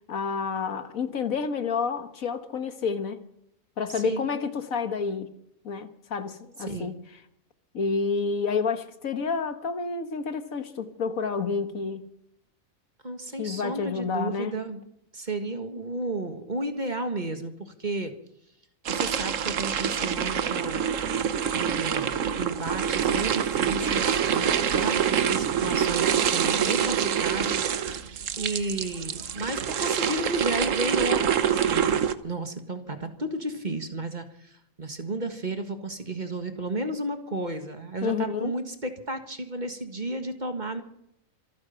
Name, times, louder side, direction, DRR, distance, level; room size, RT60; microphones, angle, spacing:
voice 1, 0.1-3.2 3.8-5.3 5.7-7.0 7.7-12.1 13.4-14.5 38.0-38.5, left 5 dB, 75° left, 1.8 m, -29 dB
voice 2, 3.9-4.3 6.7-7.0 13.0-14.8 15.1-18.1 18.9-20.8 21.5-27.6 28.0-31.9 32.2-40.8, right 2 dB, 35° right, 1.7 m, -33 dB
sound 1, 18.9-32.1, right 8 dB, 65° right, 1.3 m, -26 dB
26.0 x 9.5 x 5.8 m
omnidirectional pair, 1.5 m